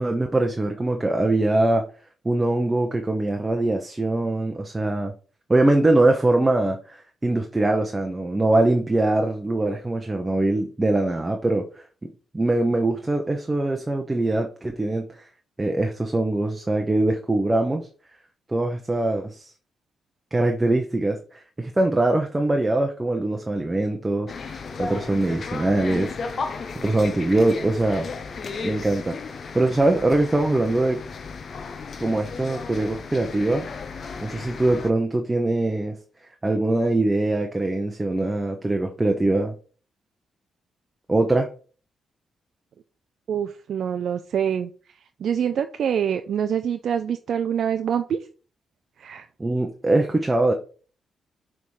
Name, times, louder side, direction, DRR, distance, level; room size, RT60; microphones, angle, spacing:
voice 1, 0.0-1.8 2.2-5.1 5.5-11.6 12.3-15.3 15.6-17.9 18.5-19.5 20.3-28.1 28.6-29.2 29.5-31.0 32.0-33.7 34.2-36.0 36.4-39.6 41.1-41.5 49.4-50.5, right 2 dB, 15° right, 3 dB, 0.8 m, -22 dB
sound 1, 24.3-34.9, left 4 dB, 50° left, 0.8 m, -35 dB
voice 2, 43.3-44.7 45.2-48.2 49.0-49.3, right 8 dB, 65° right, 8 dB, 0.4 m, -25 dB
6.7 x 3.6 x 4.8 m, 0.39 s
cardioid pair, 105°, 0 cm